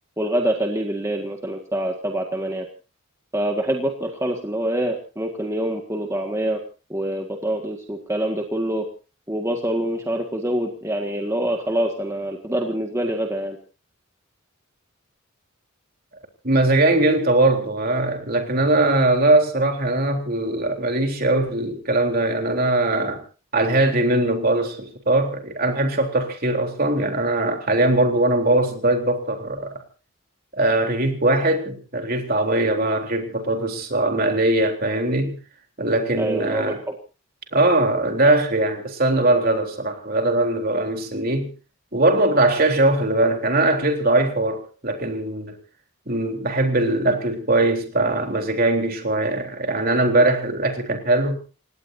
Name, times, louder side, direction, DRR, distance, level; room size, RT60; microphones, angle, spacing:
voice 1, 0.2-2.7 3.3-6.6 6.9-8.8 9.3-13.6 36.2-36.8, right 1 dB, 15° right, 2 dB, 1.8 m, -25 dB
voice 2, 16.4-23.2 23.5-29.7 30.5-35.4 35.8-36.8 37.5-41.5 41.9-45.6 46.1-51.4, right 2 dB, 45° right, 4 dB, 3.6 m, -21 dB
29.5 x 17.5 x 2.7 m, 0.34 s
head